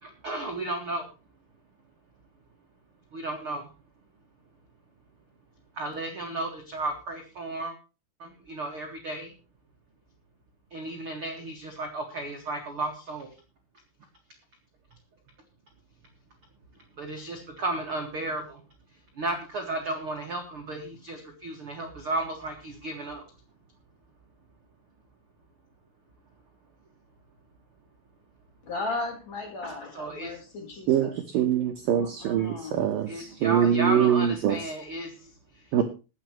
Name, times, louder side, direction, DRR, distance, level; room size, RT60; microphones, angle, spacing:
voice 1, 0.0-1.1 3.1-3.7 5.7-7.7 8.2-9.3 10.7-13.3 17.0-18.6 19.1-23.2 29.9-30.3 33.1-35.8, right 2 dB, 50° right, 2 dB, 1.7 m, -34 dB
voice 2, 28.6-31.1 31.9-32.8 33.2-33.8, left 3 dB, 35° left, 2 dB, 5.2 m, -37 dB
voice 3, 30.9-34.6 35.7-35.8, right 9 dB, 85° right, 5 dB, 2.0 m, -24 dB
21.0 x 8.8 x 3.2 m, 0.31 s
omnidirectional pair, 5.6 m